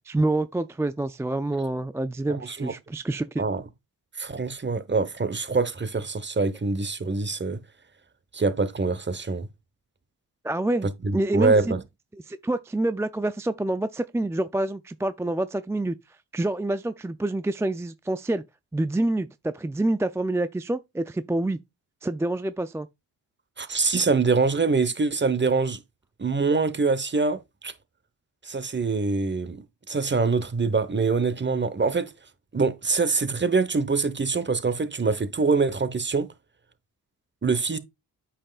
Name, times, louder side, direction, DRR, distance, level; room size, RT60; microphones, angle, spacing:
voice 1, 0.1-3.4 10.4-11.7 12.2-15.9 16.3-18.4 18.7-21.6 22.0-22.9, right 2 dB, 5° right, 0.3 m, -27 dB
voice 2, 2.3-2.7 3.4-3.6 4.2-7.6 8.3-9.5 11.0-11.8 23.6-25.8 26.2-27.7 28.4-32.1 32.5-36.3 37.4-37.8, right 4 dB, 25° right, 1.0 m, -24 dB
8.5 x 5.5 x 2.4 m
supercardioid pair, 50°, 43 cm